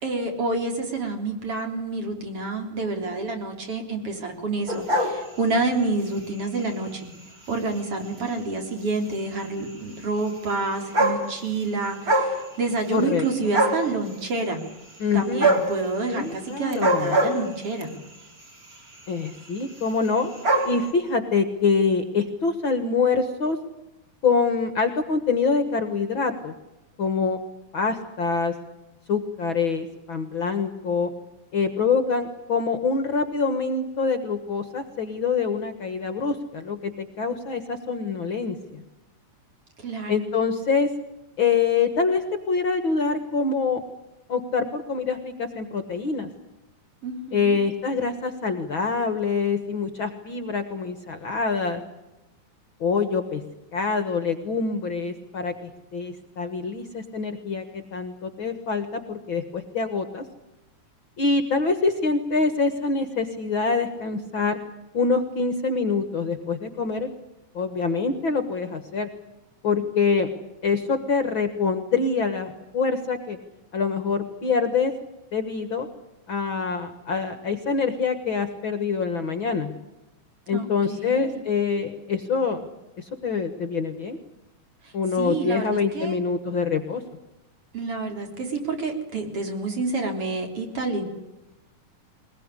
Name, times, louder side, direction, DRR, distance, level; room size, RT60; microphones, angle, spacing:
voice 1, 0.0-7.1 7.5-14.6 15.1-18.0 39.8-40.1 47.0-47.6 80.5-81.4 84.8-86.2 87.7-91.1, right 3 dB, 50° right, 4 dB, 4.5 m, -28 dB
sound 1, 4.7-5.8 6.4-6.7 7.5-7.6 7.8-7.9 8.2-8.3 9.4-9.5 10.5-10.6 10.8-11.6 11.9-12.4 12.7-13.3 13.5-13.9 15.4-15.7 16.7-17.9 18.7-19.0 19.3-19.4 19.6-19.7 19.9-20.7, right 1 dB, 25° right, 4.5 m, -22 dB
voice 2, 12.9-13.5 15.0-15.5 16.1-17.2 19.1-20.3 20.6-23.6 24.2-26.6 27.0-27.4 27.7-28.6 29.1-31.1 31.5-38.8 40.1-40.9 41.4-43.8 44.3-46.3 47.3-51.8 52.8-53.4 53.7-60.2 61.2-64.6 64.9-67.1 67.5-69.1 69.6-70.3 70.6-73.4 73.7-74.9 75.3-75.9 76.3-79.7 80.5-82.6 83.0-84.2 84.9-87.0, left 4 dB, 50° left, 9 dB, 1.8 m, -25 dB
22.0 x 20.5 x 9.9 m, 0.98 s
omnidirectional pair, 3.5 m